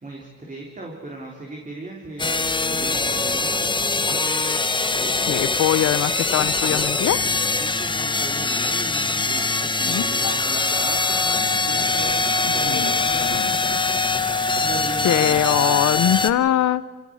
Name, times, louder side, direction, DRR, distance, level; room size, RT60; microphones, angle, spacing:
voice 1, 0.0-2.3 2.7-3.7 7.4-13.8 14.1-15.4, right 2 dB, 25° right, -1 dB, 4.0 m, -37 dB
sound 1, 2.2-16.3, left 3 dB, 15° left, 1.1 m, -22 dB
voice 2, 5.1-7.3 9.9-10.3 12.6-13.5 15.0-16.8, left 11 dB, 65° left, 16 dB, 0.8 m, -22 dB
27.5 x 17.5 x 6.4 m, 1.5 s
cardioid pair, 90°, 30 cm